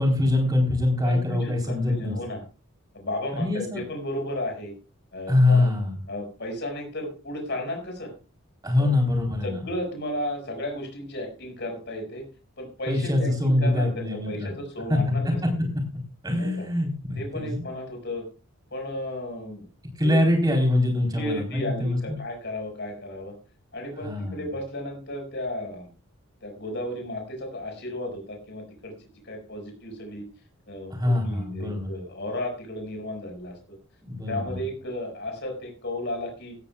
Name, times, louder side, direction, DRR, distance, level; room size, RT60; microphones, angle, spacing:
voice 1, 0.0-2.2 3.3-3.8 5.3-6.0 8.6-9.6 12.9-14.5 14.9-15.0 16.2-17.6 20.0-22.2 24.0-24.4 30.9-31.9 34.0-34.6, left 2 dB, 20° right, 2 dB, 4.0 m, -24 dB
voice 2, 1.0-2.4 2.9-4.7 5.1-5.8 6.1-8.1 8.8-8.9 9.4-12.2 12.6-15.7 16.3-16.7 17.2-18.3 18.7-19.7 20.0-20.2 21.1-23.4 23.7-25.9 26.4-28.9 29.2-30.2 30.7-33.6 34.3-36.6, left 1 dB, 55° left, 2 dB, 5.5 m, -34 dB
17.0 x 13.0 x 2.4 m, 0.33 s
head